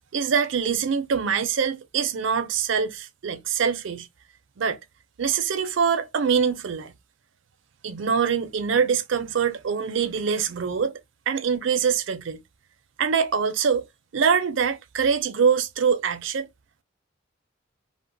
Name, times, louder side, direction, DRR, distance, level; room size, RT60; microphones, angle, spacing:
voice 1, 0.1-4.1 4.6-4.8 5.2-6.9 7.8-10.9 11.3-12.4 13.0-13.8 14.1-16.5, right 6 dB, 70° right, 0.4 m, -24 dB
2.9 x 2.1 x 2.5 m
head